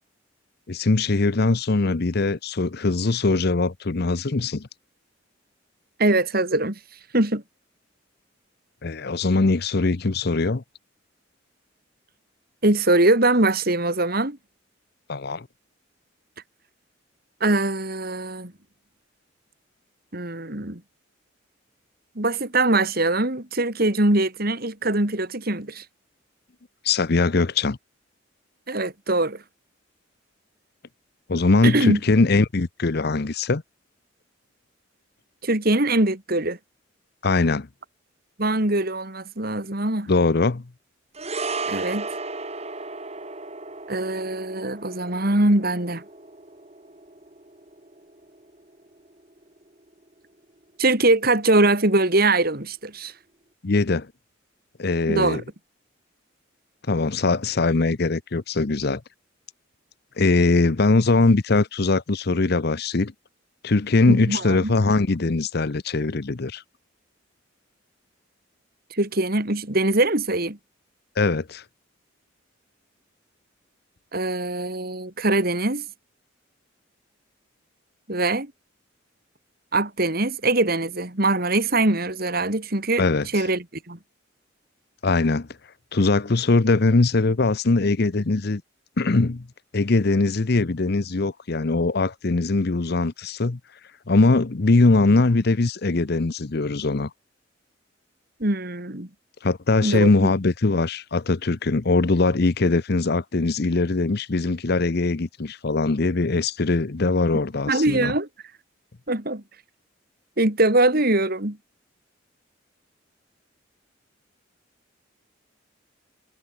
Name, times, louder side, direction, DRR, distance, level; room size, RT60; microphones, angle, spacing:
voice 1, 0.7-4.7 8.8-10.6 15.1-15.5 26.8-27.8 31.3-33.6 37.2-37.7 40.1-40.6 53.6-54.1 54.8-55.4 56.9-59.0 60.2-63.1 63.6-66.6 71.2-71.6 83.0-83.3 85.0-85.5 85.9-88.6 89.0-89.5 89.7-93.6 94.1-97.1 99.4-108.1, left 3 dB, 50° left, 0.7 m, -21 dB
voice 2, 6.0-6.8 7.1-7.4 12.6-14.4 17.4-18.5 20.1-20.8 22.2-25.8 28.7-29.4 31.6-32.0 35.4-36.6 38.4-40.1 41.7-42.1 43.9-46.0 50.8-53.1 55.1-55.4 64.1-64.7 68.9-70.6 74.1-75.9 78.1-78.5 79.7-84.0 98.4-99.1 99.8-100.1 107.7-108.3 109.1-109.4 110.4-111.6, right 2 dB, 50° right, 2.9 m, -22 dB
sound 1, 41.1-49.6 49.9-50.1, right 3 dB, 30° right, 4.4 m, -35 dB
head